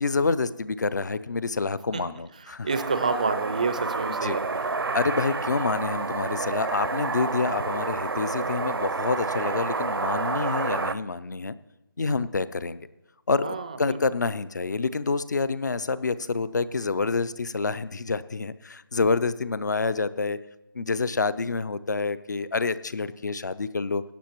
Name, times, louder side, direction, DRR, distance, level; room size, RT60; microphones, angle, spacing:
voice 1, 0.0-2.7 4.2-4.4 4.9-11.5 12.0-12.8 13.3-20.4 20.7-24.0, left 4 dB, 50° left, 16 dB, 0.5 m, -27 dB
voice 2, 2.4-5.0 13.4-14.0, right 4 dB, 20° right, 9 dB, 0.4 m, -29 dB
sound 1, 2.7-10.9, right 3 dB, 75° right, 0.6 m, -29 dB
17.0 x 9.4 x 3.0 m, 1.0 s
figure-of-eight pair, 165°, 12 cm